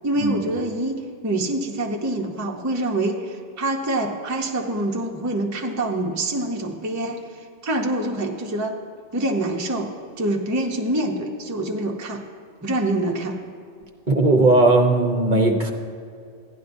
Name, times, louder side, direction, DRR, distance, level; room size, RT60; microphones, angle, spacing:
voice 1, 0.0-7.2 7.6-8.8 9.1-9.9 10.2-12.2 12.6-13.4, right 1 dB, 20° right, 1 dB, 0.6 m, -25 dB
voice 2, 14.1-15.7, right 2 dB, 45° right, 2 dB, 0.9 m, -17 dB
15.5 x 11.0 x 2.6 m, 2.4 s
omnidirectional pair, 1.2 m